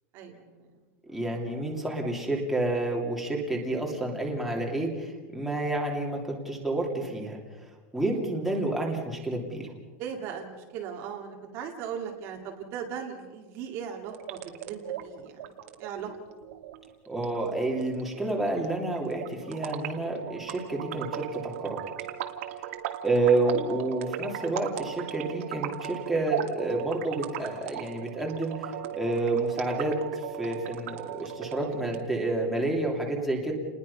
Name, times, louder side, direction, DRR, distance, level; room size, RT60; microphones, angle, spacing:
voice 1, 0.1-0.7 1.1-1.5 10.0-15.4 15.8-16.1, right 7 dB, 35° right, 1 dB, 2.2 m, -38 dB
voice 2, 1.1-7.4 7.9-9.7 17.1-21.8 23.0-33.5, right 2 dB, ahead, -2 dB, 2.9 m, -29 dB
sound 1, 14.0-32.0, right 11 dB, 65° right, 2.5 m, -38 dB
30.0 x 20.5 x 5.6 m, 1.3 s
supercardioid pair, 180°, 8 cm